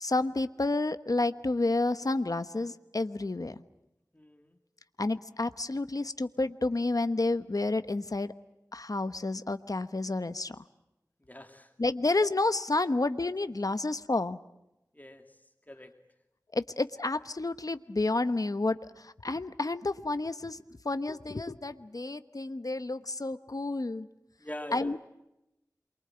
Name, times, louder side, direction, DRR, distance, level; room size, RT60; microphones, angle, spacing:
voice 1, 0.0-3.5 5.0-8.3 8.7-10.6 11.8-14.4 16.5-24.1 24.7-25.0, left 2 dB, 65° left, 11 dB, 1.1 m, -30 dB
voice 2, 4.1-4.6 11.3-11.7 14.9-15.4 15.7-15.9 24.4-25.0, left 1 dB, 25° left, 5 dB, 2.4 m, -44 dB
28.5 x 23.5 x 8.9 m, 0.89 s
wide cardioid pair, 50°, 7 cm